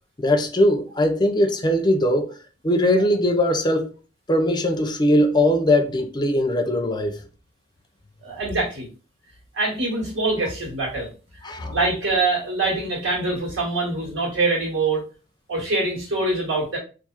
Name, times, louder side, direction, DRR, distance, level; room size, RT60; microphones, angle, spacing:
voice 1, 0.2-2.3 2.6-3.9 4.3-7.2 11.4-11.8, left 1 dB, 25° left, 0.5 m, -20 dB
voice 2, 8.2-8.9 9.5-11.1 11.5-15.0 15.5-16.8, right 3 dB, 70° right, 1.7 m, -24 dB
4.2 x 2.6 x 2.4 m
head